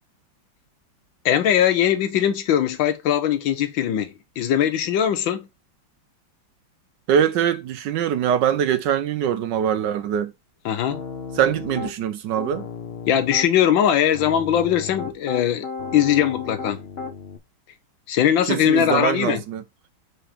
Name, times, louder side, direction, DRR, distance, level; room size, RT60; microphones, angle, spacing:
voice 1, 1.2-5.5 10.6-11.0 13.1-15.7 15.9-16.9 18.1-19.4, left 10 dB, 75° left, 1.5 m, -20 dB
voice 2, 7.1-10.3 11.3-12.7 18.5-19.6, right 9 dB, 75° right, 1.1 m, -22 dB
Piano, 10.9-12.0 12.4-13.5 14.1-17.4, left 5 dB, 45° left, 0.8 m, -34 dB
5.0 x 4.9 x 4.4 m
omnidirectional pair, 2.2 m